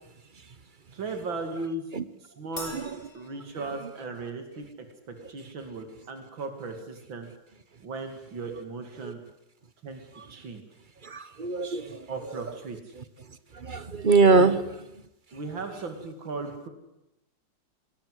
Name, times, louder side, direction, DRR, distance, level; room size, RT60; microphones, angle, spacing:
voice 1, 0.9-1.9 2.2-2.8 3.1-4.7 5.1-7.3 7.8-9.2 9.8-10.0 10.3-10.6 12.1-12.8 14.3-14.6 15.3-16.7, right 3 dB, 85° right, 6 dB, 3.2 m, -36 dB
Crash cymbal, 2.6-4.2, left 1 dB, 20° left, 4.6 m, -43 dB
voice 2, 11.0-12.0 13.6-14.6, right 4 dB, 35° right, 14 dB, 0.9 m, -22 dB
23.5 x 20.5 x 8.1 m, 0.88 s
omnidirectional pair, 2.1 m